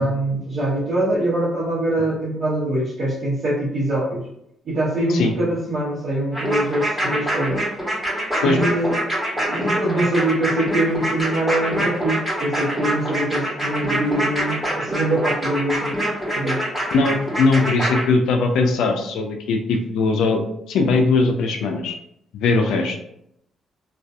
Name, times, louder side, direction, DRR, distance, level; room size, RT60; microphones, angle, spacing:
voice 1, 0.0-4.3 4.6-7.7 8.4-9.0 9.3-16.0 16.3-16.6, right 1 dB, 55° right, -9 dB, 0.9 m, -23 dB
sound 1, 6.3-18.0, right 1 dB, 5° right, 1.3 m, -24 dB
voice 2, 16.9-20.4 20.7-21.9 22.3-23.0, left 3 dB, 80° left, 4 dB, 0.3 m, -20 dB
2.6 x 2.3 x 2.3 m, 0.76 s
supercardioid pair, 70°, 0 cm